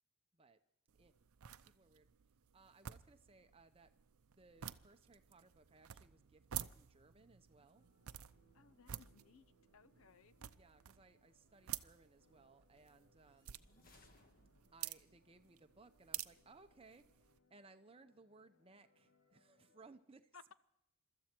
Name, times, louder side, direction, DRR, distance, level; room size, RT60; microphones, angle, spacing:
sound 1, 0.9-17.4, right 12 dB, 75° right, 0.6 m, -52 dB
voice 1, 1.7-2.1 2.5-3.9 4.3-7.9 10.5-13.7 14.7-20.3, right 3 dB, 25° right, 9 dB, 0.8 m, -64 dB
sound 2, 7.7-20.0, left 2 dB, 85° left, 2.7 m, -77 dB
voice 2, 8.5-9.5 9.7-10.5 20.3-20.5, left 5 dB, 70° left, 15 dB, 0.7 m, -62 dB
sound 3, 13.2-15.0, left 2 dB, 40° left, 1.4 m, -68 dB
23.5 x 13.5 x 4.5 m, 0.83 s
head